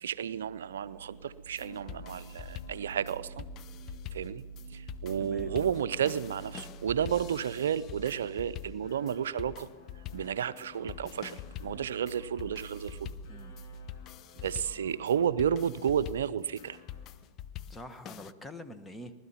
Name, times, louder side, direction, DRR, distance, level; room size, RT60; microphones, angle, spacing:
voice 1, 0.0-3.5 4.1-4.4 4.7-9.7 10.1-13.1 14.4-16.8, right 8 dB, 80° right, 15 dB, 0.5 m, -32 dB
sound 1, 0.6-17.3, left 5 dB, 60° left, 2.9 m, -56 dB
sound 2, 1.5-18.3, left 11 dB, 40° left, 0.5 m, -45 dB
voice 2, 5.2-5.5 13.2-13.6 17.7-19.1, left 1 dB, 10° left, 9 dB, 1.2 m, -45 dB
19.5 x 12.5 x 5.7 m, 1.3 s
hypercardioid pair, 100°, 0 cm